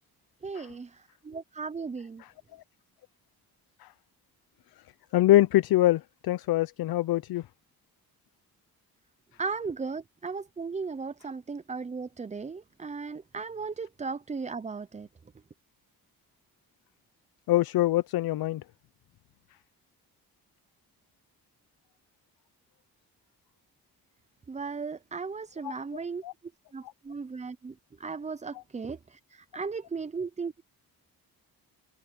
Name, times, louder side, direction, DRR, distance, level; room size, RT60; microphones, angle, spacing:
voice 1, 0.4-2.2 9.4-15.1 24.5-26.2 26.7-27.7 28.0-30.6, right 4 dB, 20° right, 0.5 m, -36 dB
voice 2, 5.1-7.4 17.5-18.6 25.6-25.7 26.2-26.3, left 15 dB, 70° left, 0.6 m, -24 dB
cardioid pair, 95°, 38 cm